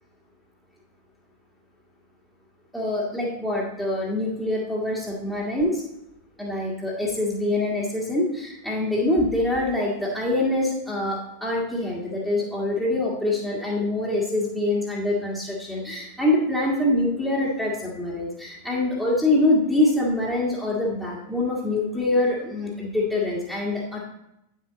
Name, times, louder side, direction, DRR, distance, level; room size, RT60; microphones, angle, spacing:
voice 1, 2.7-5.8 6.4-24.0, left 1 dB, ahead, -7 dB, 1.7 m, -25 dB
9.4 x 6.6 x 3.9 m, 0.86 s
figure-of-eight pair, 90°, 0 cm